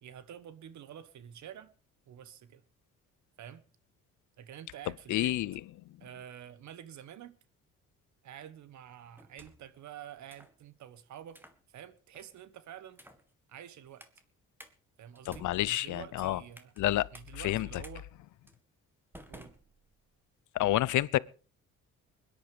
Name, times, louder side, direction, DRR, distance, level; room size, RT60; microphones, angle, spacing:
voice 1, 0.0-1.7 2.1-2.6 3.4-3.6 4.4-5.4 6.0-7.4 8.2-11.4 11.7-13.0 13.5-14.1 15.0-16.7 17.1-18.1 19.3-19.5, right 10 dB, 70° right, 1.4 m, -48 dB
voice 2, 5.1-5.5 15.3-16.4 16.8-17.1 17.3-17.8 20.5-21.2, left 15 dB, 75° left, 0.7 m, -29 dB
sound 1, 9.2-9.8 10.3-10.6 11.3-11.6 12.1-12.4 12.9-13.3 14.0-14.2 14.6-14.7 15.2-16.8 17.1-17.3 17.8-18.0 18.5-18.6 19.1-20.2, right 1 dB, 5° right, 1.9 m, -54 dB
21.0 x 10.5 x 5.1 m
cardioid pair, 90°, 30 cm